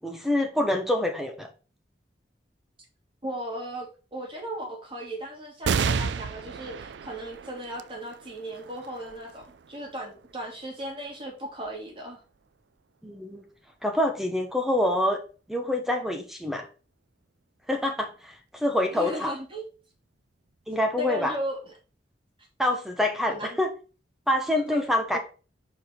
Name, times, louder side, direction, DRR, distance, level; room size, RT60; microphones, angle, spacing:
voice 1, 0.0-1.5 13.0-13.4 13.8-15.2 15.5-16.7 17.7-19.3 20.7-21.3 22.6-23.7 24.3-25.2, left 1 dB, ahead, 4 dB, 1.0 m, -26 dB
voice 2, 3.2-12.2 18.9-19.6 21.0-21.7 23.3-23.6 24.7-24.8 25.1-25.2, equal, 30° right, -1 dB, 2.8 m, -36 dB
sound 1, 5.6-12.5 13.1-13.2 14.4-14.9, right 6 dB, 80° right, 0.4 m, -33 dB
5.0 x 4.6 x 5.8 m, 0.34 s
head